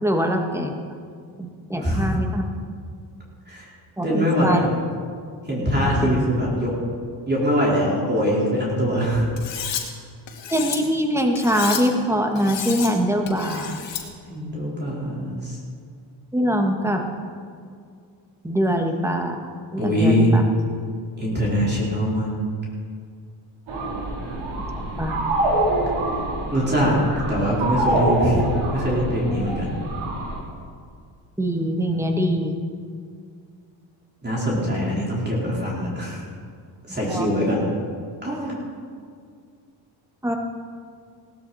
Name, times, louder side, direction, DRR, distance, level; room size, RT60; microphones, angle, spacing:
voice 1, 0.0-0.7 1.4-2.4 4.0-4.7 5.8-6.1 10.5-13.8 16.3-17.1 18.4-19.4 19.7-20.4 25.0-25.2 31.4-32.6 37.1-37.3 40.2-40.4, equal, 5° right, 3 dB, 1.7 m, -23 dB
voice 2, 4.0-4.6 5.5-6.8 7.3-9.2 14.3-15.6 19.8-20.3 21.2-22.3 26.5-27.0 27.3-28.4 28.7-29.7 34.2-36.2 36.9-37.6 38.2-38.5, equal, 20° right, -5 dB, 4.4 m, -22 dB
Cutlery silverware, 9.4-9.8 10.3-10.8 11.4-11.8 12.4-12.9 13.3-14.0, left 8 dB, 65° left, 2.3 m, -31 dB
sound 1, 23.7-30.4, right 1 dB, 85° right, 3.7 m, -25 dB
18.5 x 12.5 x 4.3 m, 2.1 s
cardioid pair, 100°, 46 cm